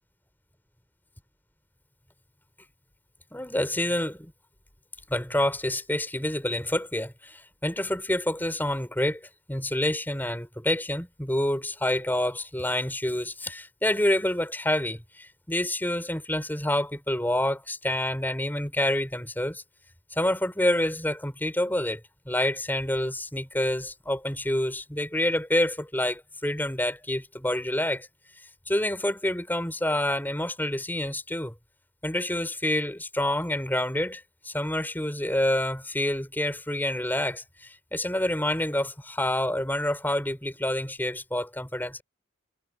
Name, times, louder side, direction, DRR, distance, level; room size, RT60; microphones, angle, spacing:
voice 1, 3.3-4.3 5.1-9.2 9.5-19.6 20.1-22.0 22.2-28.1 28.7-31.5 32.0-42.0, left 1 dB, 10° left, 5.0 m, -28 dB
head